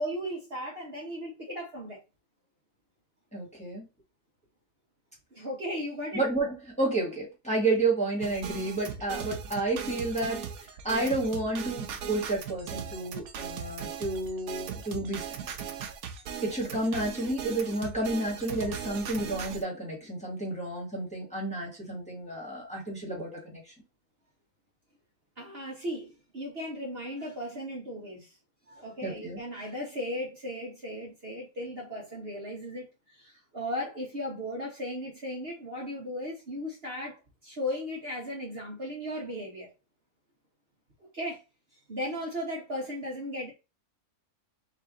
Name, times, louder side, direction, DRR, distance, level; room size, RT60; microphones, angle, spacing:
voice 1, 0.0-2.0 5.3-6.2 25.4-28.3 28.7-32.9 33.2-37.2 37.4-39.7 41.1-41.4 41.9-43.5, equal, 45° right, 1.4 m, -36 dB
voice 2, 3.3-3.9 6.1-10.4 10.8-15.5 16.4-23.6 29.0-29.4, right 2 dB, 5° left, 1.6 m, -31 dB
sound 1, 8.2-19.6, right 8 dB, 75° right, 1.2 m, -38 dB
4.0 x 2.9 x 3.7 m
omnidirectional pair, 1.6 m